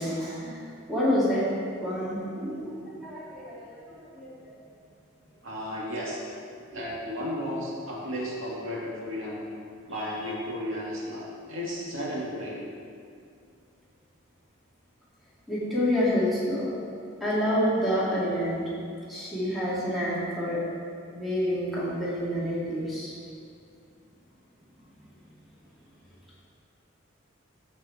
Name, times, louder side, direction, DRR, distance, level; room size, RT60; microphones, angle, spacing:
voice 1, 0.0-1.5 1.8-4.5 6.7-6.8 10.2-10.3 15.5-16.7 17.2-18.7 19.1-20.6 21.1-23.1, equal, ahead, -10 dB, 2.4 m, -28 dB
voice 2, 5.4-6.2 6.7-9.4 9.8-12.6, equal, 70° right, -5 dB, 2.1 m, -34 dB
14.0 x 5.4 x 4.4 m, 2.3 s
head